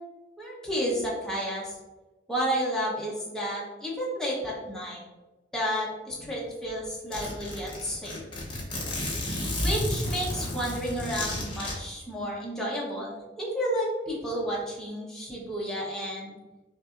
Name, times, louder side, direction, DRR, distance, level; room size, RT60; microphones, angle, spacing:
voice 1, 0.4-1.8 2.3-5.0 5.5-8.2 9.6-16.3, equal, 5° left, -6 dB, 0.9 m, -31 dB
Zipper (clothing), 6.3-6.4 6.7-6.8 7.1-11.7, left 1 dB, 25° left, 0.9 m, -32 dB
5.6 x 2.7 x 2.5 m, 1.1 s
head